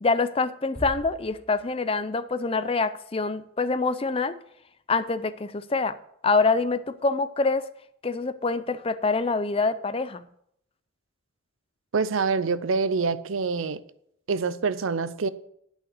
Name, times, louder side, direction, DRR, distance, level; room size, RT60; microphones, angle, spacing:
voice 1, 0.0-4.4 4.9-6.0 6.2-7.7 8.0-10.3, left 3 dB, 25° left, 0.4 m, -25 dB
Bass drum, 0.7-2.2, equal, 5° left, 1.2 m, -41 dB
voice 2, 11.9-13.8 14.3-15.3, right 4 dB, 75° right, 0.6 m, -26 dB
9.9 x 5.6 x 8.2 m
head